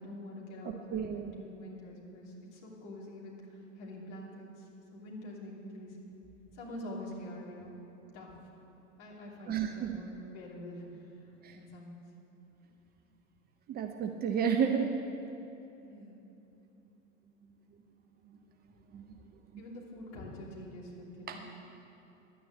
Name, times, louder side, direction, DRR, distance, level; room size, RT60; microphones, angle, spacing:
voice 1, 0.0-6.1 6.5-7.8 8.1-8.3 9.0-10.8 11.1-12.0 15.8-16.2 19.6-21.4, left 1 dB, 45° left, -3 dB, 3.1 m, -46 dB
voice 2, 0.9-1.3 9.5-10.0 11.4-11.6 13.7-15.0 18.9-19.0 19.5-19.6 21.3-21.4, right 7 dB, 25° right, 5 dB, 0.6 m, -31 dB
11.0 x 9.4 x 8.0 m, 2.9 s
figure-of-eight pair, 85°, 40 cm